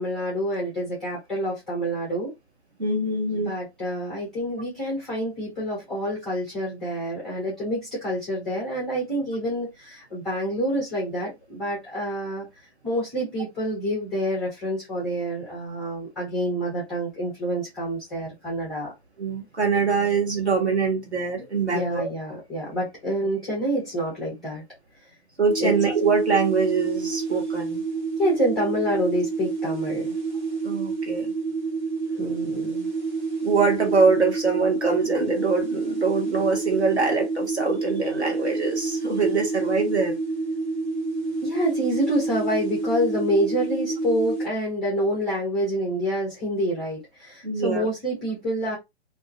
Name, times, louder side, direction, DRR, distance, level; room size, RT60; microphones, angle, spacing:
voice 1, 0.0-2.3 3.3-12.5 12.8-18.9 21.7-24.6 25.6-25.7 28.2-30.2 32.1-32.9 41.4-48.8, equal, ahead, 0.3 m, -27 dB
voice 2, 2.8-3.5 19.2-22.1 25.4-27.8 30.6-31.3 33.4-40.2 47.4-47.9, right 4 dB, 85° right, 1.1 m, -23 dB
sound 1, 25.5-44.5, right 4 dB, 45° right, 0.9 m, -29 dB
2.4 x 2.2 x 2.4 m
figure-of-eight pair, 125°, 32 cm